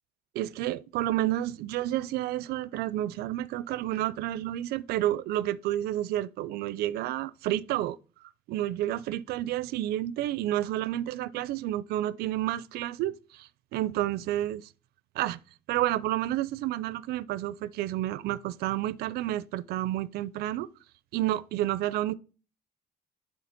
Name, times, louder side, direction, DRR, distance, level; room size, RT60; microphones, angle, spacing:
voice 1, 0.3-14.7 15.2-15.4 15.7-20.7 21.1-22.1, right 14 dB, 80° right, 0.4 m, -30 dB
9.3 x 3.7 x 4.3 m
cardioid pair, 150°, 16 cm